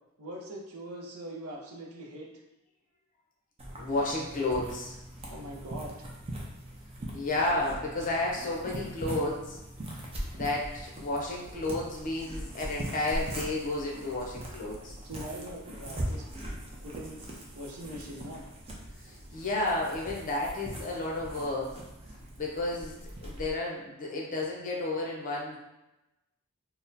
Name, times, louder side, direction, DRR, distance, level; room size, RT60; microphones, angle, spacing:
voice 1, 0.2-2.3 5.3-6.1 15.0-16.3 16.8-17.2 17.5-18.5, right 1 dB, 75° right, 0 dB, 0.6 m, -42 dB
sound 1, 3.6-23.5, right 1 dB, 25° right, 0.5 m, -41 dB
voice 2, 3.8-5.0 7.1-9.6 10.3-15.0 19.0-21.7 22.4-25.6, left 2 dB, 40° left, -2 dB, 0.7 m, -32 dB
4.1 x 2.1 x 2.6 m, 0.96 s
head